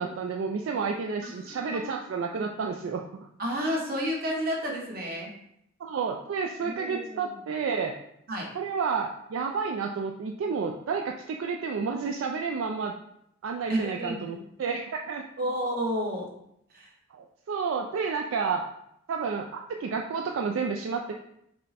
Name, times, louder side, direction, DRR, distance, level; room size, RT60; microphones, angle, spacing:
voice 1, 0.0-3.1 5.8-8.0 8.5-12.9 13.4-15.2 17.1-18.6 19.1-21.1, right 5 dB, 75° right, 2 dB, 0.3 m, -30 dB
voice 2, 1.4-2.0 2.3-2.4 3.4-5.3 6.6-7.3 8.3-8.5 13.7-14.4 15.4-16.3 16.7-16.9, equal, 50° right, -2 dB, 1.1 m, -31 dB
5.3 x 2.1 x 4.1 m, 0.76 s
head